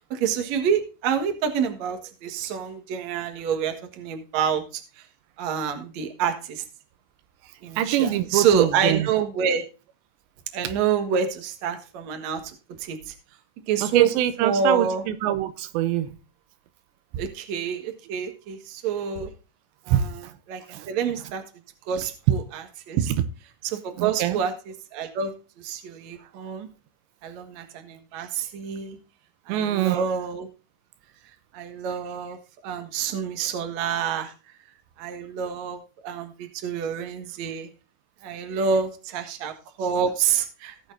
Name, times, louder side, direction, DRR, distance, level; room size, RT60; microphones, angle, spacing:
voice 1, 0.1-4.8 5.4-6.6 7.6-9.6 10.5-13.1 13.7-14.1 14.4-15.0 17.2-19.3 19.9-20.2 20.5-20.6 20.9-21.4 21.9-23.0 23.6-24.5 24.9-26.7 27.2-29.0 29.5-30.5 31.5-32.4 32.6-34.3 35.0-37.7 38.2-40.9, right 7 dB, 55° right, 2.2 m, -27 dB
voice 2, 7.8-9.1 13.8-16.1 19.9-20.3 20.7-20.9 23.0-23.3 24.0-24.4 29.5-30.0, right 11 dB, 85° right, 2.9 m, -24 dB
18.0 x 6.7 x 2.6 m
omnidirectional pair, 5.1 m